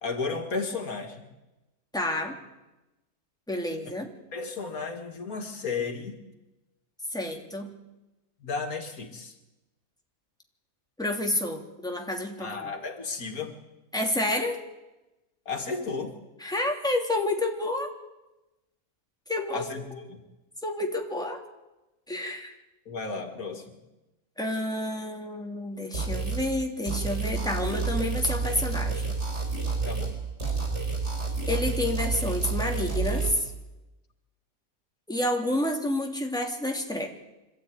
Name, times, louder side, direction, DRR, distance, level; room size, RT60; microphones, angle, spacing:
voice 1, 0.0-1.3 4.3-6.2 8.4-9.3 12.4-13.5 15.5-16.2 19.5-19.8 20.1-20.2 22.9-23.8 29.8-30.2, left 4 dB, 85° left, 5 dB, 2.6 m, -33 dB
voice 2, 1.9-2.4 3.5-4.1 7.1-7.7 11.0-12.7 13.9-14.6 16.4-17.9 19.3-19.7 19.9-20.0 20.6-21.4 22.1-22.6 24.4-29.2 31.5-33.5 35.1-37.1, left 1 dB, 5° left, 1 dB, 2.8 m, -29 dB
sound 1, 25.9-26.5 26.9-30.1 30.4-33.3, right 4 dB, 50° right, 5.3 m, -29 dB
25.5 x 13.5 x 9.5 m, 1.0 s
omnidirectional pair, 1.5 m